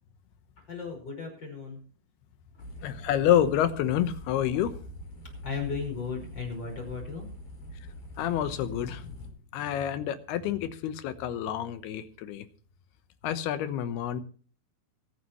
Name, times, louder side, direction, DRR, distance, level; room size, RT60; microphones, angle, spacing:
voice 1, 0.6-1.8 2.5-2.7 5.4-7.2, left 5 dB, 30° left, 2 dB, 5.9 m, -36 dB
sound 1, 2.6-9.3, equal, 45° left, 4.8 m, -44 dB
voice 2, 2.8-4.8 8.2-9.2 9.5-12.5 13.2-14.2, left 10 dB, 85° left, 11 dB, 3.1 m, -28 dB
23.0 x 9.7 x 3.1 m, 0.42 s
omnidirectional pair, 4.5 m